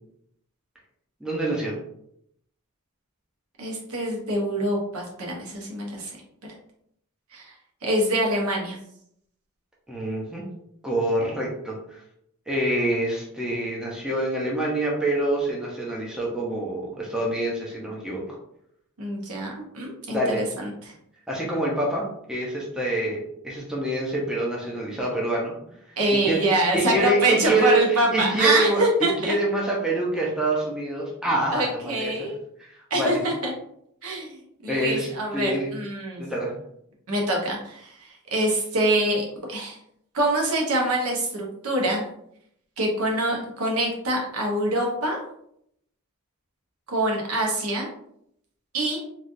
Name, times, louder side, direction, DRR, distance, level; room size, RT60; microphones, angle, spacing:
voice 1, 1.2-1.7 9.9-10.4 10.8-12.0 12.5-18.2 20.1-20.5 21.3-22.0 22.3-25.5 26.1-26.4 26.7-32.1 32.6-33.2 34.0-34.2 34.7-35.7 36.2-36.5, right 1 dB, 5° right, -4 dB, 0.5 m, -26 dB
voice 2, 3.6-6.1 7.3-7.5 7.8-8.8 19.0-20.9 26.0-29.3 31.5-32.4 32.9-33.5 34.0-34.4 34.6-36.2 37.1-38.0 38.3-39.8 40.1-42.0 42.8-45.2 46.9-47.9 48.7-49.0, right 1 dB, 75° right, -1 dB, 0.9 m, -25 dB
3.2 x 2.3 x 2.5 m, 0.73 s
head